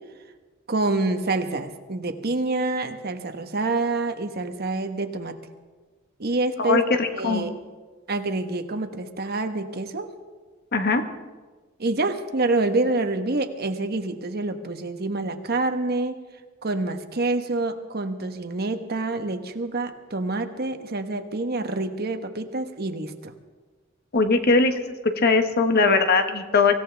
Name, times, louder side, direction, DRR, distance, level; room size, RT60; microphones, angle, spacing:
voice 1, 0.7-5.3 6.2-7.5 8.1-10.1 11.8-16.2 16.6-23.3, right 2 dB, 50° right, 7 dB, 1.2 m, -27 dB
voice 2, 6.6-7.4 10.7-11.0 24.1-24.8 25.2-26.7, left 4 dB, 50° left, 6 dB, 1.4 m, -20 dB
24.0 x 16.5 x 3.4 m, 1.3 s
head